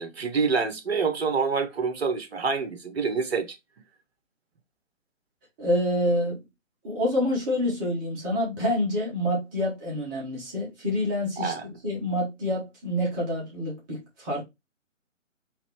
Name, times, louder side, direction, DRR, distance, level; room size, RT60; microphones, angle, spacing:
voice 1, 0.0-3.5 11.4-11.7, right 5 dB, 50° right, 1.0 m, -27 dB
voice 2, 5.6-6.4 6.8-14.4, left 1 dB, 15° right, 1.1 m, -27 dB
4.0 x 3.2 x 3.0 m
figure-of-eight pair, 140°, 39 cm